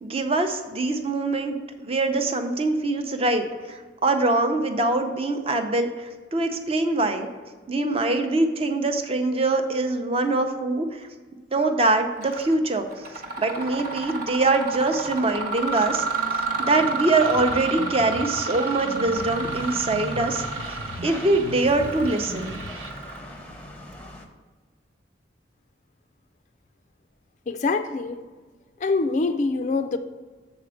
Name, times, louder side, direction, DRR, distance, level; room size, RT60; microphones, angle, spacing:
voice 1, 0.0-7.3 7.7-11.0 11.5-12.9 13.4-16.3 16.6-20.7 21.0-22.6, right 2 dB, 30° right, 6 dB, 0.6 m, -23 dB
Mechanisms, 12.2-12.5 12.9-23.5, right 4 dB, 45° right, 1.0 m, -31 dB
sound 1, 17.2-22.9, right 2 dB, 85° right, 0.9 m, -38 dB
sound 2, 19.1-24.3, left 1 dB, 5° left, 0.7 m, -41 dB
voice 2, 27.5-28.2 28.8-30.0, left 3 dB, 40° left, 9 dB, 0.3 m, -24 dB
7.2 x 4.2 x 6.2 m, 1.4 s
head